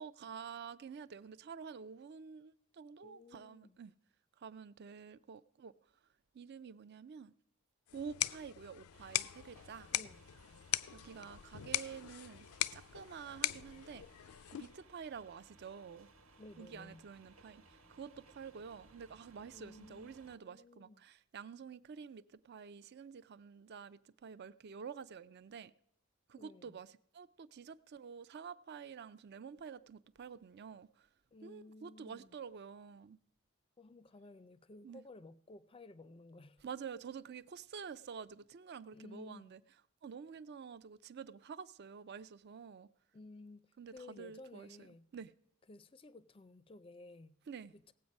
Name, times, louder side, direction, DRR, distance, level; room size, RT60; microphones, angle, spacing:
voice 1, 0.0-3.9 4.4-5.7 6.3-7.3 7.9-9.9 10.9-12.5 12.7-14.0 14.5-16.1 16.6-17.6 17.9-25.7 26.3-26.9 27.1-31.1 31.4-33.2 34.8-35.0 36.6-39.6 40.0-42.9 43.8-44.9 45.1-45.3 47.5-47.7, right 6 dB, 50° right, 0.4 m, -49 dB
voice 2, 3.0-3.8 9.9-10.3 16.4-17.0 19.5-21.1 26.4-26.8 31.3-32.4 33.8-36.6 38.9-39.5 43.1-45.1 45.7-47.4 47.7-47.9, left 2 dB, 25° left, 0.4 m, -55 dB
sound 1, 7.9-14.9, left 14 dB, 90° left, 0.4 m, -40 dB
sound 2, 8.9-20.4, right 2 dB, 75° right, 1.3 m, -63 dB
17.5 x 7.8 x 5.3 m
head